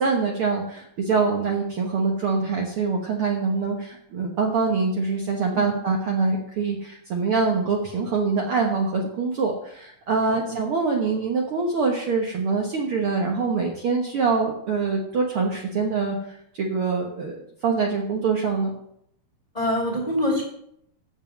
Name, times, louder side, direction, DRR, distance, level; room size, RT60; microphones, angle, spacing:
voice 1, 0.0-18.7, right 4 dB, 85° right, 0 dB, 1.2 m, -24 dB
voice 2, 19.5-20.4, left 1 dB, 15° left, 0 dB, 1.9 m, -25 dB
9.0 x 7.2 x 7.3 m, 0.72 s
omnidirectional pair, 4.4 m